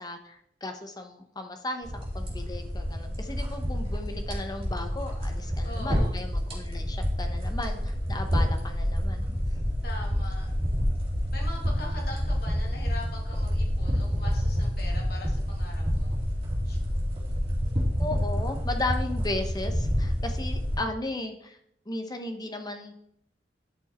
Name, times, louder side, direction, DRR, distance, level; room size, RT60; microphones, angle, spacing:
voice 1, 0.0-9.4 18.0-21.6 21.9-22.9, left 2 dB, 25° left, 6 dB, 1.0 m, -35 dB
sound 1, 1.8-20.8, equal, 35° right, 2.9 m, -28 dB
voice 2, 5.6-6.2 9.8-10.5 11.3-16.2 16.6-16.8, left 2 dB, 65° left, -1 dB, 2.7 m, -42 dB
10.5 x 6.4 x 4.3 m, 0.71 s
head